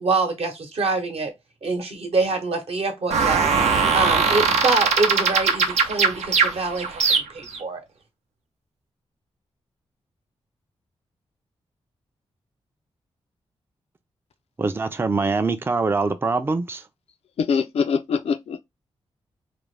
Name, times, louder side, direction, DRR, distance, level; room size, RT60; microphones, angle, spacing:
voice 1, 0.0-1.3 1.6-3.4 3.9-7.8, right 3 dB, 60° right, 0.9 m, -25 dB
sound 1, 3.1-7.6, right 5 dB, 80° right, 0.6 m, -20 dB
voice 2, 14.6-16.8, right 3 dB, 20° right, 0.4 m, -23 dB
voice 3, 17.4-18.6, left 6 dB, 65° left, 0.4 m, -23 dB
2.5 x 2.1 x 3.2 m
cardioid pair, 55°, 11 cm